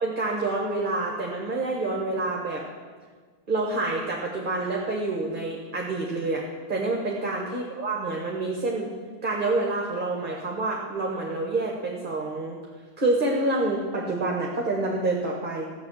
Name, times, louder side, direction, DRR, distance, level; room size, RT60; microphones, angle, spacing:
voice 1, 0.0-2.6 3.5-8.9 9.2-12.6 13.0-15.6, right 2 dB, 30° right, -1 dB, 1.6 m, -27 dB
14.0 x 6.6 x 8.6 m, 1.5 s
omnidirectional pair, 1.7 m